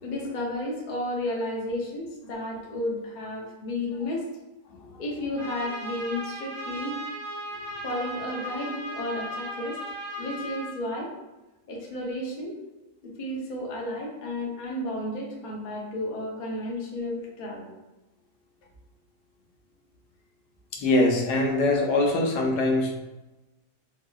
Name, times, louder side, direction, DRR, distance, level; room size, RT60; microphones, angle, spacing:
voice 1, 0.0-4.3 5.0-7.0 7.8-9.8 10.2-11.1 11.7-12.6 13.0-17.7, left 1 dB, 50° left, -2 dB, 0.5 m, -32 dB
Trumpet, 5.4-10.7, equal, 75° right, 1.6 m, -36 dB
voice 2, 20.7-22.9, left 2 dB, 90° left, 1 dB, 1.3 m, -23 dB
3.6 x 2.7 x 2.3 m, 1.1 s
omnidirectional pair, 1.7 m